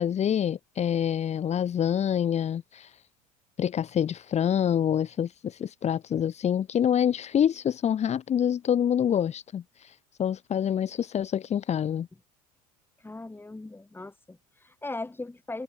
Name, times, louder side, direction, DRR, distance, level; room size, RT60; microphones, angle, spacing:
voice 1, 0.0-3.0 3.6-12.1, left 9 dB, 35° left, 1.7 m, -26 dB
voice 2, 13.0-15.6, left 2 dB, 10° left, 5.0 m, -39 dB
hypercardioid pair, 75°, 19 cm